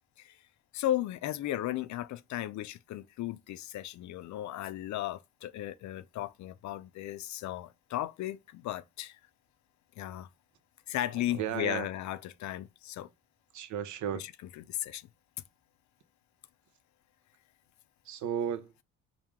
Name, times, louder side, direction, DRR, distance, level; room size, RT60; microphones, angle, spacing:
voice 1, 0.7-9.2 10.0-10.3 10.9-13.1 14.7-15.1, left 13 dB, 70° left, 0.5 m, -35 dB
voice 2, 11.3-11.9 13.5-14.3 18.0-18.7, right 9 dB, 70° right, 0.7 m, -34 dB
4.6 x 2.1 x 3.6 m
cardioid pair, 90°, 30 cm